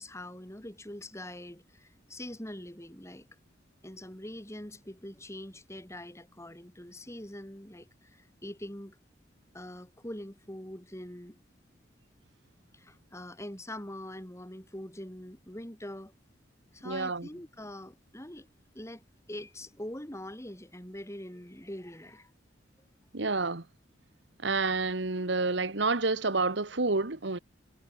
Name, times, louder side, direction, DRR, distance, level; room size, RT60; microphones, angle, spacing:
voice 1, 0.0-3.3 3.8-9.0 9.5-11.4 12.7-16.1 16.7-18.5 18.7-22.3, left 1 dB, 15° left, 3.3 m, -43 dB
voice 2, 16.8-17.3 23.1-23.6 24.4-27.4, right 3 dB, 70° right, 1.5 m, -29 dB
head